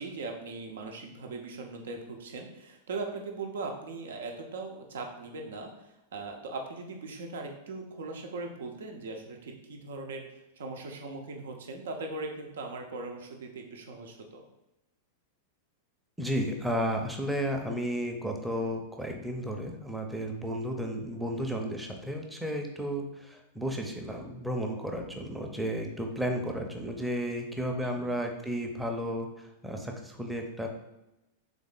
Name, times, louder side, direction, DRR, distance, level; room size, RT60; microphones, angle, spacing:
voice 1, 0.0-5.7 6.1-10.2 10.6-14.4 27.8-28.1, right 3 dB, 65° right, 3 dB, 0.7 m, -39 dB
voice 2, 16.2-30.7, equal, 5° right, 2 dB, 0.7 m, -33 dB
3.6 x 3.5 x 3.9 m, 0.93 s
figure-of-eight pair, 95°, 0 cm